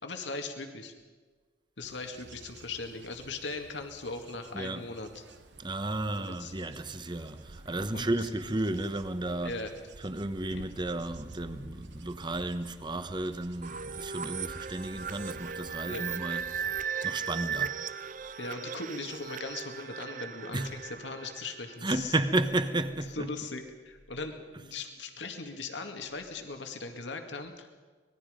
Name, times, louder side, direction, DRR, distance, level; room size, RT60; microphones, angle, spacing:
voice 1, 0.0-0.9 1.8-5.2 6.2-6.5 7.9-8.3 9.4-9.7 10.5-10.6 15.8-16.0 18.4-22.2 23.1-27.7, left 3 dB, 80° left, 2.2 m, -39 dB
Bird / Insect / Wind, 1.8-16.8, right 2 dB, 75° right, 1.0 m, -51 dB
voice 2, 5.6-9.5 10.0-17.7 20.5-20.7 21.8-23.3, right 2 dB, 25° right, 1.1 m, -33 dB
sound 1, 13.6-22.2, right 7 dB, 45° right, 0.7 m, -37 dB
25.5 x 20.5 x 5.2 m
head